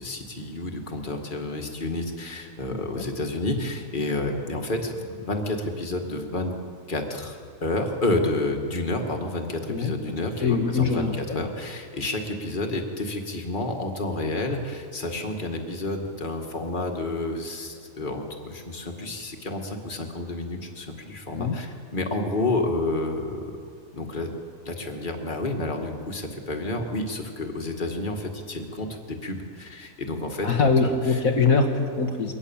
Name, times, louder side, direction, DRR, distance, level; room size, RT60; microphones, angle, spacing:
voice 1, 0.0-6.6 6.9-23.4 23.9-24.3 24.7-30.5 30.8-31.2, left 2 dB, 30° left, 3 dB, 2.3 m, -30 dB
voice 2, 2.7-3.0 9.7-9.9 10.4-11.5 21.4-21.6 30.4-32.3, left 4 dB, 65° left, 3 dB, 2.0 m, -23 dB
23.5 x 18.5 x 7.3 m, 2.2 s
omnidirectional pair, 1.6 m